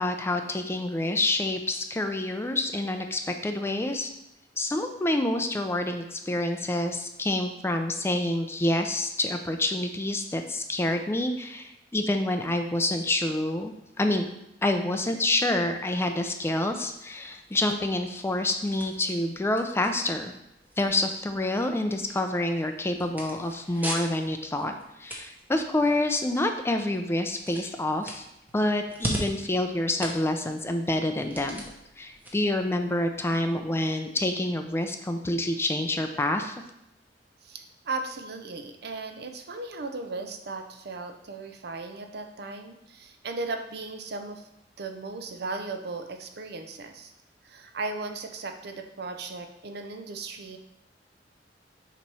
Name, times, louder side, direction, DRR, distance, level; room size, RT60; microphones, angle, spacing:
voice 1, 0.0-4.1 4.6-14.3 14.6-20.3 20.8-24.7 25.0-28.2 28.5-31.6 32.0-36.5, left 1 dB, 15° left, 6 dB, 0.4 m, -27 dB
sound 1, 16.7-33.6, right 1 dB, 10° right, 0.9 m, -42 dB
voice 2, 37.4-44.4 44.8-47.1 47.4-50.6, right 3 dB, 65° right, 5 dB, 0.6 m, -36 dB
6.8 x 3.0 x 4.7 m, 0.82 s
head